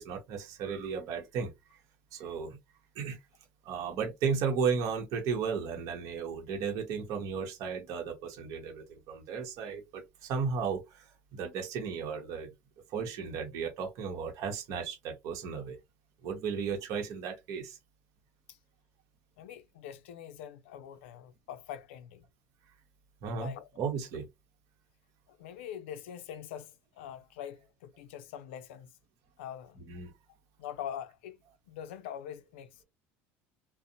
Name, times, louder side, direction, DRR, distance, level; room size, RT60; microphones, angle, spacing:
voice 1, 0.0-1.8 2.1-2.6 3.0-3.2 3.6-12.5 12.9-15.8 16.2-17.8 23.2-24.3 29.9-30.1, right 6 dB, 65° right, 0.8 m, -35 dB
voice 2, 19.4-22.3 23.3-23.7 25.3-28.9 29.4-29.9 30.6-31.4 31.7-32.8, left 9 dB, 85° left, 0.4 m, -44 dB
2.6 x 2.0 x 2.7 m
supercardioid pair, 90°, 6 cm